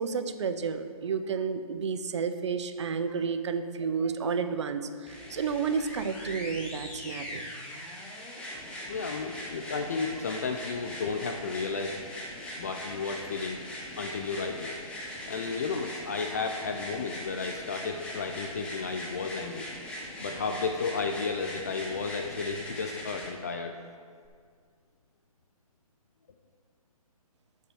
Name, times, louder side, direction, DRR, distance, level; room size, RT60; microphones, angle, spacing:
voice 1, 0.0-7.4, right 5 dB, 50° right, 10 dB, 0.7 m, -31 dB
sound 1, 5.1-23.3 24.3-24.4, left 1 dB, 5° left, 0.9 m, -41 dB
voice 2, 8.9-12.0 12.6-13.6 14.0-14.8 15.3-19.7 20.2-23.8, left 4 dB, 25° left, 4 dB, 0.4 m, -33 dB
9.6 x 5.8 x 6.2 m, 2.1 s
hypercardioid pair, 160°, 19 cm